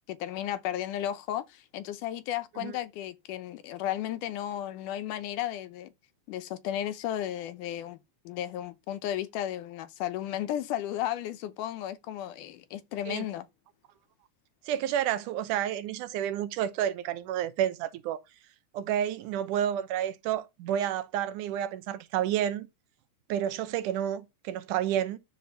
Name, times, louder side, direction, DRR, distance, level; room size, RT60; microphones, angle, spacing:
voice 1, 0.1-5.9 6.3-8.0 8.3-13.5, left 12 dB, 85° left, 2.4 m, -34 dB
voice 2, 14.7-18.2 18.7-22.7 23.3-25.2, right 10 dB, 90° right, 2.3 m, -30 dB
12.0 x 4.3 x 5.7 m
omnidirectional pair, 3.6 m